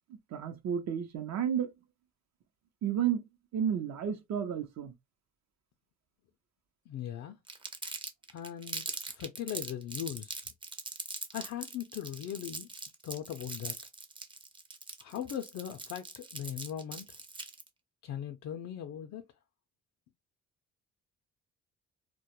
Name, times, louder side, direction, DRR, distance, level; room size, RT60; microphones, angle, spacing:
voice 1, 0.1-1.7 2.8-3.2 3.5-4.9, right 8 dB, 65° right, 0.7 m, -32 dB
voice 2, 6.9-7.4 8.3-10.4 11.3-12.7 13.0-13.7 15.0-17.2 18.0-19.2, left 10 dB, 60° left, 0.4 m, -39 dB
Crumpling crinkling, 7.5-17.7, right 3 dB, 15° right, 0.5 m, -41 dB
2.2 x 2.1 x 2.9 m
cardioid pair, 90°, 30 cm